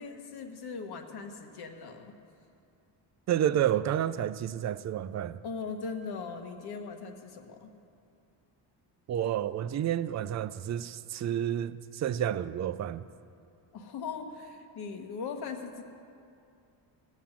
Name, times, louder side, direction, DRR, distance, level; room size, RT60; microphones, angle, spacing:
voice 1, 0.0-2.1 5.4-7.7 13.7-15.8, left 5 dB, 55° left, 1.4 m, -39 dB
voice 2, 3.3-5.4 9.1-13.0, right 10 dB, 40° right, 0.4 m, -30 dB
17.0 x 7.2 x 7.4 m
cardioid pair, 120°, 45 cm